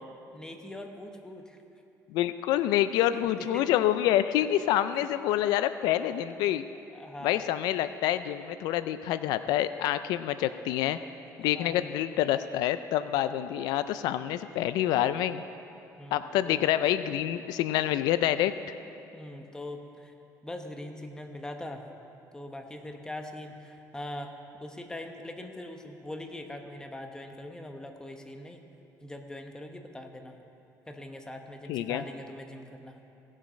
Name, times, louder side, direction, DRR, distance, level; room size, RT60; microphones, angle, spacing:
voice 1, 0.3-1.6 3.1-3.7 4.2-4.3 4.9-5.1 6.1-6.2 6.9-7.5 10.4-10.5 11.4-11.9 16.0-16.6 19.1-20.1 20.4-21.8 22.3-24.3 24.6-28.6 29.0-30.4 30.9-33.0, left 1 dB, 10° left, 5 dB, 1.0 m, -42 dB
voice 2, 2.1-6.6 7.2-11.0 11.4-15.4 16.1-18.8 31.7-32.0, left 12 dB, 85° left, 13 dB, 0.4 m, -27 dB
17.0 x 7.3 x 5.2 m, 2.7 s
cardioid pair, 120°, 7 cm